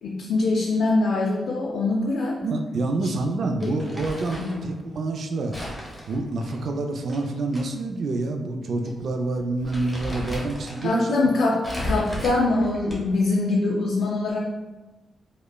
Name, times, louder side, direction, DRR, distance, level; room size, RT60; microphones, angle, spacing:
voice 1, 0.0-2.4 3.0-3.1 3.6-3.7 4.4-4.6 10.8-14.4, left 2 dB, 85° left, -3 dB, 0.4 m, -23 dB
voice 2, 2.4-5.6 6.1-11.2, right 2 dB, 60° right, 4 dB, 0.3 m, -27 dB
Crumpling crinkling, 3.6-4.6 5.5-7.6 8.0-8.1 8.9-9.0 9.4-10.9 11.6-13.2, equal, ahead, 0.9 m, -34 dB
5.0 x 2.1 x 2.2 m, 1.2 s
wide cardioid pair, 140°, 0 cm